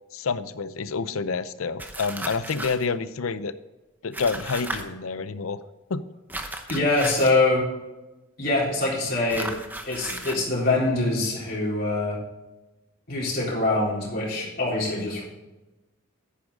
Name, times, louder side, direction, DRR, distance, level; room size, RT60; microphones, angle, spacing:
voice 1, 0.1-3.5 4.0-5.6 5.9-6.0, left 4 dB, 75° left, 14 dB, 0.6 m, -28 dB
sound 1, 1.8-2.9 4.1-4.8 6.3-7.4 9.3-10.4, right 1 dB, 10° right, 0.8 m, -35 dB
voice 2, 6.7-7.6 8.4-9.5 9.9-12.2 13.1-15.2, left 2 dB, 45° left, -5 dB, 4.0 m, -24 dB
10.0 x 9.8 x 3.7 m, 1.1 s
head